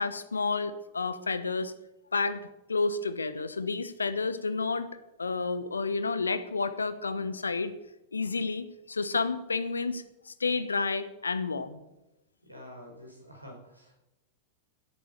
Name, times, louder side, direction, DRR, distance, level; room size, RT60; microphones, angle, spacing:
voice 1, 0.0-1.7 2.1-2.4 2.7-4.9 5.2-7.7 8.1-11.8, left 4 dB, 75° left, 14 dB, 1.1 m, -30 dB
voice 2, 12.4-13.9, equal, 90° right, -1 dB, 5.1 m, -48 dB
17.0 x 8.9 x 6.7 m, 0.94 s
figure-of-eight pair, 90°, 0 cm